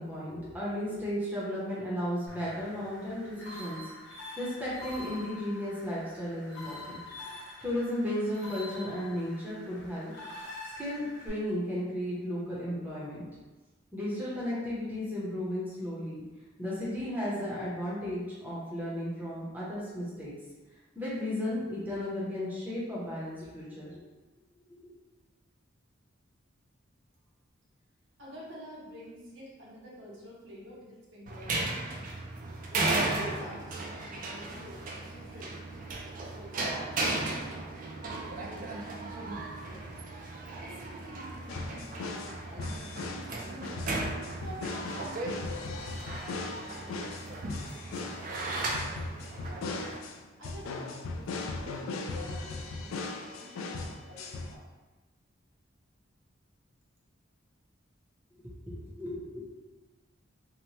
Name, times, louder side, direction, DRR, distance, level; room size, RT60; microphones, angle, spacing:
voice 1, 0.0-3.8 4.4-7.0 7.6-10.1 10.8-13.3 13.9-16.2 16.6-20.3 21.0-24.0 24.8-24.9 58.7-59.6, left 1 dB, 10° right, -8 dB, 0.6 m, -34 dB
sound 1, 2.3-11.3, left 2 dB, 55° left, 0.7 m, -46 dB
voice 2, 28.2-32.1 32.7-35.6 36.2-40.0 40.6-43.0 43.4-43.9 44.2-45.9 46.4-49.8 50.4-54.6, equal, 65° right, -5 dB, 0.7 m, -49 dB
sound 2, 31.3-50.0, right 2 dB, 45° right, 0.3 m, -36 dB
sound 3, 41.5-54.5, left 3 dB, 85° left, 0.3 m, -38 dB
2.7 x 2.1 x 3.0 m, 1.2 s
head